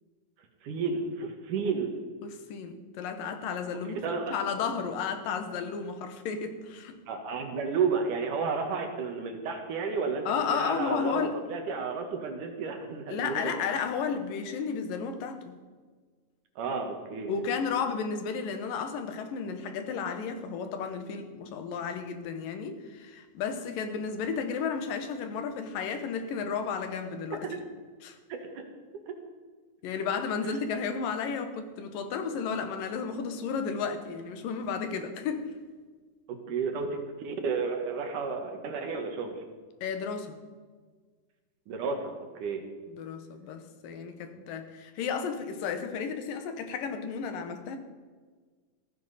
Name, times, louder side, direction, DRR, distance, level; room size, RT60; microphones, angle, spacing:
voice 1, 0.6-2.0 3.8-4.3 7.1-13.6 16.6-17.3 27.4-27.6 28.3-28.4 29.1-29.2 36.3-36.9 37.2-39.4 41.7-42.6 44.4-44.5, right 5 dB, 65° right, 4 dB, 2.9 m, -32 dB
voice 2, 2.2-7.0 10.3-11.4 13.1-15.6 17.3-27.5 28.0-28.2 29.8-35.5 39.8-40.4 42.9-47.8, left 6 dB, 75° left, 8 dB, 2.7 m, -33 dB
15.5 x 15.0 x 4.2 m, 1.5 s
omnidirectional pair, 4.1 m